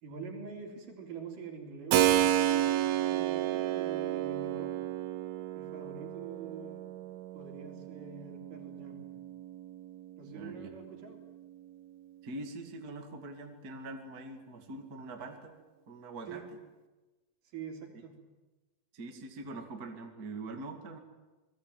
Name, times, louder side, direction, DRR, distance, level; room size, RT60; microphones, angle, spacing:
voice 1, 0.0-4.7 5.5-6.9 7.3-9.1 10.2-11.2 16.3-16.5 17.4-18.2, right 5 dB, 65° right, 3 dB, 5.0 m, -45 dB
Keyboard (musical), 1.9-10.5, right 12 dB, 85° right, 3.0 m, -31 dB
voice 2, 10.3-10.7 12.2-15.5 15.9-16.4 18.9-21.0, right 2 dB, 30° right, 4 dB, 2.3 m, -43 dB
28.5 x 20.0 x 9.2 m, 1.1 s
omnidirectional pair, 4.2 m